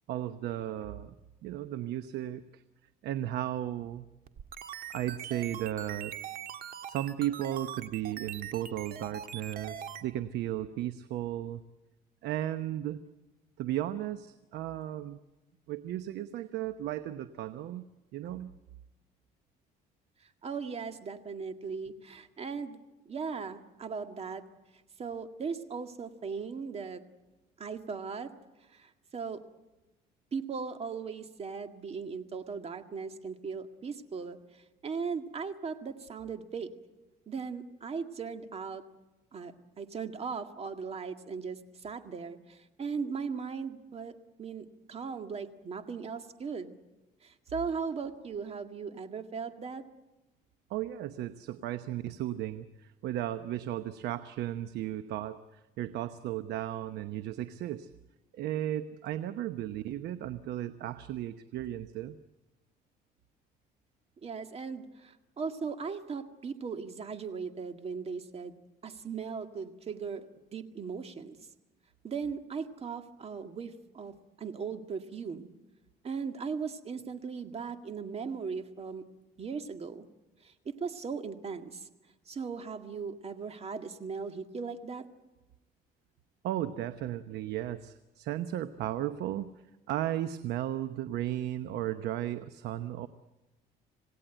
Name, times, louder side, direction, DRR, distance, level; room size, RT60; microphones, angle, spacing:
voice 1, 0.1-1.2 1.4-2.6 3.0-4.1 4.9-6.1 6.9-11.6 12.2-13.0 13.6-15.2 15.7-17.8 18.1-18.5 50.7-57.9 58.3-62.2 86.4-89.5 89.9-93.1, right 12 dB, 80° right, 11 dB, 1.0 m, -35 dB
sound 1, 4.3-10.0, right 9 dB, 60° right, 1.7 m, -42 dB
voice 2, 20.4-22.8 23.1-24.4 25.0-27.0 27.6-28.3 28.7-29.4 30.3-34.4 34.8-36.7 37.3-38.8 39.3-46.8 47.2-49.9 64.2-68.6 68.8-70.3 70.5-71.4 72.0-75.5 76.0-79.0 79.4-80.1 80.4-81.9 82.3-85.1, right 5 dB, 35° right, 7 dB, 2.0 m, -38 dB
27.0 x 17.5 x 9.1 m, 1.0 s
cardioid pair, 110°, 17 cm